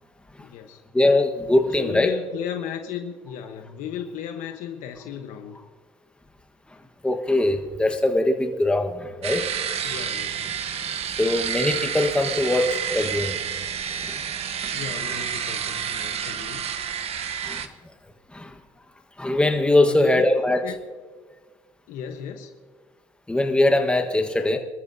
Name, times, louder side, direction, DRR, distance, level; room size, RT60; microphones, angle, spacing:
voice 1, 0.4-0.8 1.7-5.6 9.8-10.4 14.7-16.7 19.8-20.2 20.6-20.8 21.9-22.6, left 8 dB, 75° left, 5 dB, 1.1 m, -35 dB
voice 2, 0.9-2.1 7.0-9.4 11.2-13.4 14.0-14.2 17.4-17.7 18.3-18.5 19.2-20.6 23.3-24.6, left 1 dB, 10° left, 4 dB, 1.4 m, -21 dB
sound 1, 9.2-17.7, right 8 dB, 50° right, 1.1 m, -29 dB
26.0 x 13.5 x 2.8 m, 1.5 s
cardioid pair, 115°, 14 cm